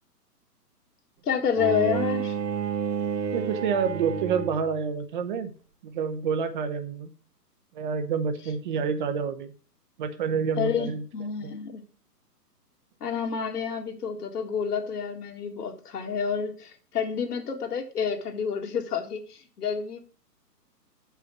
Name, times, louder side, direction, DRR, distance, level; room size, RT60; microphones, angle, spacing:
voice 1, 1.2-2.4 10.6-11.8 13.0-20.0, left 7 dB, 65° left, 4 dB, 1.8 m, -29 dB
Bowed string instrument, 1.5-4.8, right 7 dB, 80° right, 1.0 m, -30 dB
voice 2, 3.3-5.5 5.8-7.1 7.7-9.5 10.0-11.0, right 6 dB, 30° right, 9 dB, 0.8 m, -28 dB
7.1 x 5.7 x 6.0 m, 0.40 s
hypercardioid pair, 140°, 49 cm